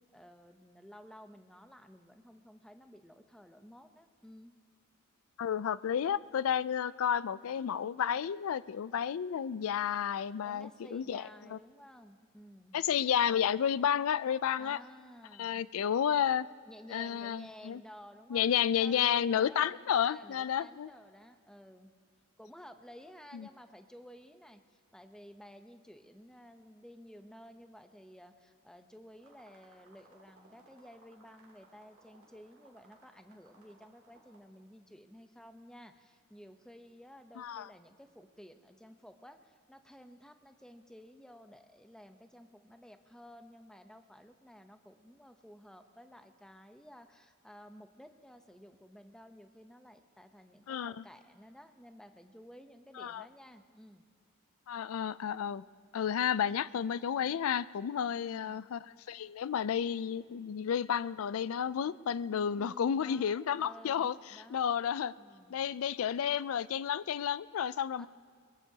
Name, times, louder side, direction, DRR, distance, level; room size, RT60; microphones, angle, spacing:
voice 1, 0.1-4.6 10.4-12.8 14.6-15.6 16.7-21.9 22.4-54.0 62.6-64.7 65.2-65.5 68.0-68.1, equal, 5° left, 7 dB, 0.7 m, -54 dB
voice 2, 5.4-11.2 11.5-11.6 12.7-14.8 15.4-16.5 16.9-17.8 18.3-20.9 23.3-23.5 37.4-37.7 50.7-51.0 53.0-53.2 54.7-55.6 55.9-65.1 65.5-68.1, left 8 dB, 70° left, 18 dB, 0.4 m, -31 dB
sound 1, 29.2-34.4, right 2 dB, 75° right, 2.8 m, -63 dB
22.5 x 22.0 x 2.8 m, 2.2 s
head